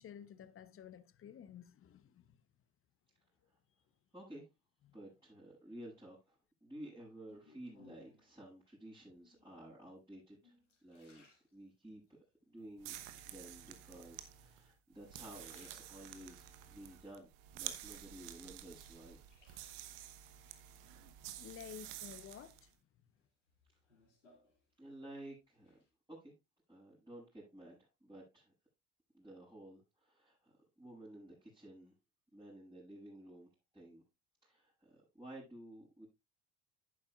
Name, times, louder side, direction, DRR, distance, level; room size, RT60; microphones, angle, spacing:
voice 1, 0.0-2.4 21.4-22.7, left 9 dB, 35° left, 1.0 m, -52 dB
voice 2, 4.1-4.5 4.9-10.5 10.8-11.3 11.5-12.2 12.5-13.0 13.3-16.4 16.7-17.3 17.5-19.2 24.8-25.8 26.1-26.3 26.7-28.5 29.1-31.9 32.3-34.0 34.4-36.1, right 1 dB, 10° right, 7.5 m, -53 dB
sound 1, 7.3-8.4 9.1-9.6 10.2-12.1 12.6-13.2 14.0-14.7 15.0-16.4 16.8-18.1 18.5-20.1 21.5-22.1 22.5-25.1 25.4-25.9, left 3 dB, 90° left, 2.6 m, -68 dB
sound 2, 12.8-22.7, right 12 dB, 65° right, 1.1 m, -50 dB
11.0 x 9.7 x 2.4 m
hypercardioid pair, 60°, 36 cm